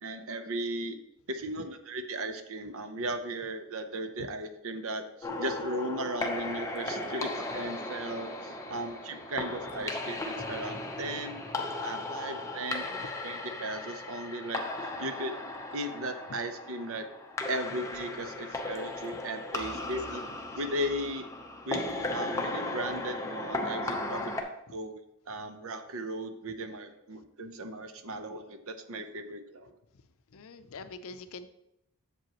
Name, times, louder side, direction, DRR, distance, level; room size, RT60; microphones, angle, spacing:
voice 1, 0.0-1.0 1.3-11.5 11.8-12.9 13.2-15.4 15.7-17.1 17.5-20.2 20.6-21.3 21.6-21.9 22.1-24.3 24.7-25.0 25.3-29.7, right 1 dB, 65° right, 8 dB, 0.8 m, -36 dB
sound 1, 5.2-24.4, left 2 dB, 15° left, 0.8 m, -36 dB
voice 2, 19.7-20.0 24.7-24.8 30.3-31.5, left 4 dB, 65° left, 11 dB, 0.5 m, -45 dB
7.8 x 7.7 x 3.0 m, 0.84 s
head